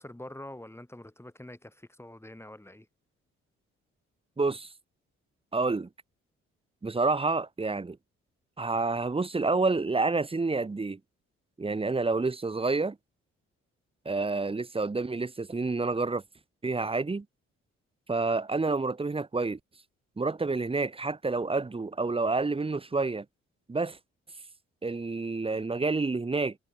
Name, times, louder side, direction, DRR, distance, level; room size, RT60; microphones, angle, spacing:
voice 1, 0.0-2.9, left 1 dB, 10° left, 3.5 m, -45 dB
voice 2, 4.4-4.7 5.5-5.9 6.8-8.0 8.6-11.0 11.6-13.0 14.0-16.2 16.6-17.3 18.1-19.6 20.2-23.2 23.7-24.0 24.8-26.6, right 3 dB, 20° right, 0.9 m, -28 dB
supercardioid pair, 55°, 29 cm